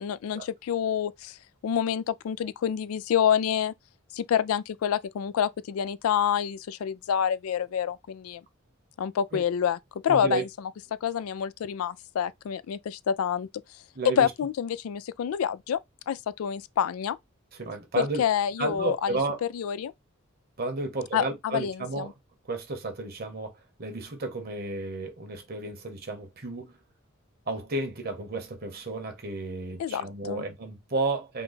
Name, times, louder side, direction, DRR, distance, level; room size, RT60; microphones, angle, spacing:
voice 1, 0.0-1.4 1.6-3.7 4.1-8.4 9.0-9.8 10.0-10.5 11.0-13.5 14.2-15.8 16.1-17.2 18.0-19.2 19.5-19.9 21.1-22.1 29.8-30.4, left 8 dB, 90° left, 0.3 m, -27 dB
voice 2, 10.1-10.4 13.9-14.3 17.5-18.2 18.6-19.4 20.6-22.1 22.5-26.7 27.5-31.4, right 2 dB, 50° right, 1.1 m, -32 dB
3.8 x 2.3 x 4.0 m
head